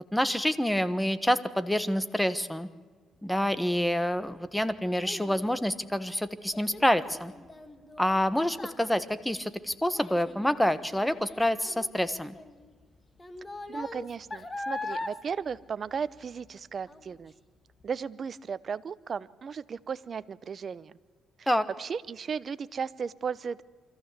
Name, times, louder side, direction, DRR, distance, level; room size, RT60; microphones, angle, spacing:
voice 1, 0.1-2.7 3.2-7.3 8.0-12.3 21.5-21.7, equal, 5° left, 14 dB, 1.3 m, -27 dB
Child speech kid speaking, 4.2-16.5 16.9-17.3 17.8-17.9, left 2 dB, 20° left, 1.9 m, -42 dB
voice 2, 13.7-17.3 17.8-20.9 21.4-21.5 21.8-23.6, right 6 dB, 45° right, 17 dB, 0.8 m, -35 dB
24.5 x 14.5 x 8.2 m, 1.4 s
cardioid pair, 95°, 0 cm